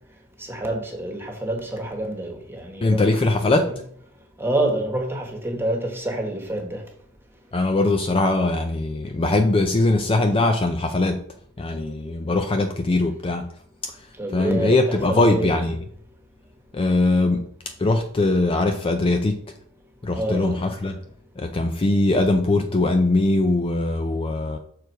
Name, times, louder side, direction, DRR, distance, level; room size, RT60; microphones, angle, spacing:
voice 1, 0.4-3.3 3.6-3.7 4.4-6.8 14.2-15.5 20.1-20.6, right 1 dB, 10° right, 1.4 m, -27 dB
voice 2, 2.8-3.7 7.5-11.2 11.6-13.5 13.8-14.0 14.3-15.8 16.7-17.5 17.8-19.4 20.0-20.9 21.4-24.6, left 2 dB, 25° left, 0.4 m, -21 dB
6.4 x 4.8 x 4.7 m
head